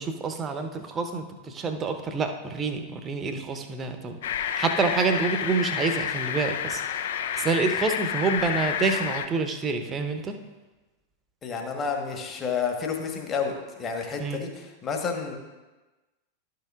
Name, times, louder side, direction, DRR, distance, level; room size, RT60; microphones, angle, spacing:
voice 1, 0.0-10.4 14.2-14.4, right 4 dB, 25° right, 7 dB, 0.8 m, -28 dB
sound 1, 4.2-9.3, left 8 dB, 60° left, 0.4 m, -29 dB
voice 2, 11.4-15.4, left 5 dB, 25° left, 3 dB, 1.2 m, -30 dB
12.0 x 6.7 x 2.4 m, 1.2 s
figure-of-eight pair, 90°, 0 cm